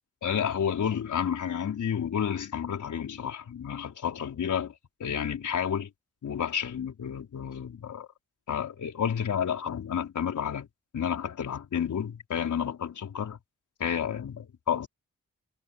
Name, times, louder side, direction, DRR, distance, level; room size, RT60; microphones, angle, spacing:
voice 1, 0.2-4.7 5.0-5.9 6.2-8.1 8.5-10.7 10.9-13.4 13.8-14.9, left 8 dB, 85° left, 4.9 m, -30 dB
cardioid pair, 55°, 29 cm